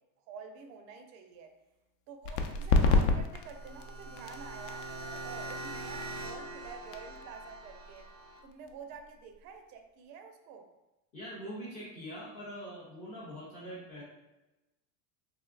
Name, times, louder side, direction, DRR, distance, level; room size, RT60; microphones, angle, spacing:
voice 1, 0.3-1.5 2.1-8.1 8.4-10.7, right 5 dB, 70° right, 6 dB, 0.6 m, -48 dB
sound 1, 2.2-9.6, left 3 dB, 75° left, 0.6 m, -32 dB
sound 2, 3.3-8.4, right 2 dB, 90° right, 1.1 m, -43 dB
voice 2, 11.1-14.0, equal, 20° left, -9 dB, 0.3 m, -43 dB
3.6 x 2.7 x 2.4 m, 1.0 s
supercardioid pair, 165°, 47 cm